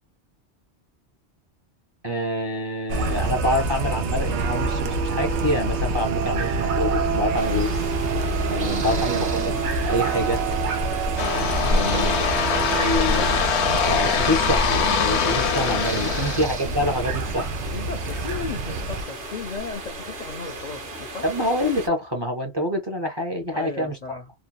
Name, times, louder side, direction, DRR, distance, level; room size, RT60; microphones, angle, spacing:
voice 1, 2.0-7.7 8.5-9.6 9.8-10.4 11.6-12.2 12.8-13.4 13.8-17.5 21.2-24.0, left 1 dB, 25° right, 0.7 m, -26 dB
sound 1, 2.9-19.0, right 3 dB, 80° right, 0.9 m, -26 dB
sound 2, 7.4-21.9, right 1 dB, 55° right, 1.1 m, -33 dB
voice 2, 8.7-9.4 11.6-13.4 16.0-17.2 17.7-21.3 23.5-24.3, left 4 dB, 50° left, 0.5 m, -35 dB
sound 3, 11.2-16.5, left 7 dB, 80° left, 0.9 m, -23 dB
2.9 x 2.2 x 2.2 m
omnidirectional pair, 1.1 m